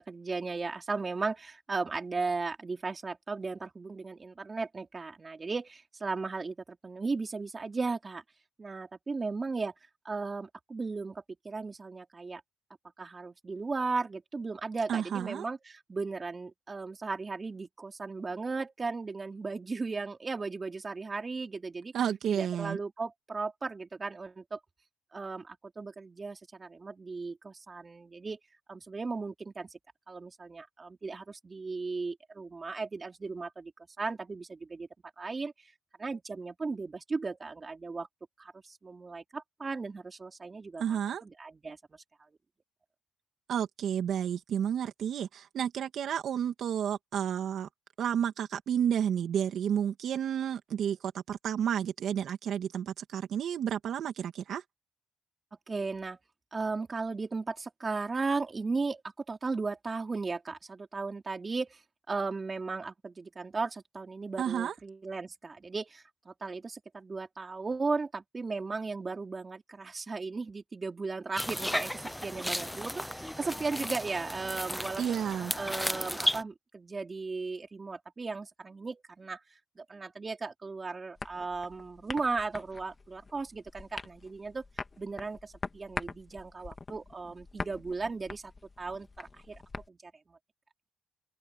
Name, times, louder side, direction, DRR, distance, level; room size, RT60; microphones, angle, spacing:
voice 1, 0.0-8.2 8.6-9.7 10.0-12.4 13.0-21.9 22.3-24.6 25.1-28.4 28.7-29.8 30.1-33.7 34.0-34.9 35.2-35.5 36.0-38.1 38.4-42.0 55.7-56.2 56.5-59.0 59.3-61.8 62.1-75.2 75.5-79.4 79.8-84.6 85.0-88.5 88.8-89.6 89.9-90.4, right 4 dB, 30° right, 3.8 m, -36 dB
voice 2, 14.9-15.4 21.9-22.8 40.8-41.2 43.5-47.7 48.0-54.6 64.4-64.7 75.0-75.5, right 9 dB, 65° right, 2.4 m, -31 dB
sound 1, 71.4-76.4, equal, 5° left, 0.7 m, -34 dB
sound 2, 81.2-89.9, left 3 dB, 30° left, 2.1 m, -44 dB
cardioid pair, 90°, 0 cm